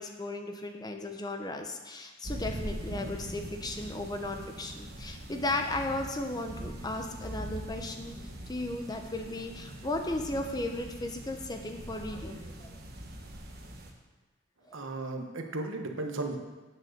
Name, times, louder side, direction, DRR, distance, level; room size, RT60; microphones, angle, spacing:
voice 1, 0.0-8.2 8.5-12.7 14.7-14.8, left 2 dB, 20° left, 4 dB, 0.7 m, -35 dB
sound 1, 2.2-13.9, right 1 dB, 50° right, 1.2 m, -42 dB
voice 2, 14.7-16.4, right 2 dB, 70° right, 4 dB, 1.1 m, -35 dB
8.7 x 6.5 x 6.5 m, 1.2 s
head